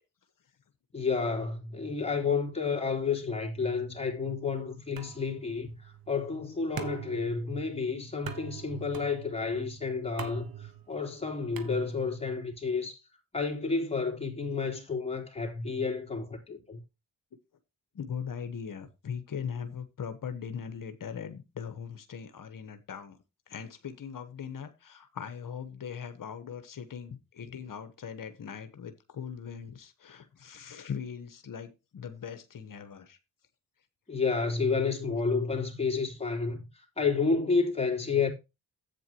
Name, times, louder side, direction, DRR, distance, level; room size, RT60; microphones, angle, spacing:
voice 1, 0.9-13.0 13.3-16.8 34.1-38.3, left 4 dB, 15° left, 3.4 m, -30 dB
sound 1, 5.0-12.3, right 9 dB, 60° right, 1.3 m, -44 dB
voice 2, 17.9-23.2 23.5-33.2, left 7 dB, 55° left, 1.2 m, -40 dB
10.5 x 8.5 x 2.9 m
cardioid pair, 65°, 40 cm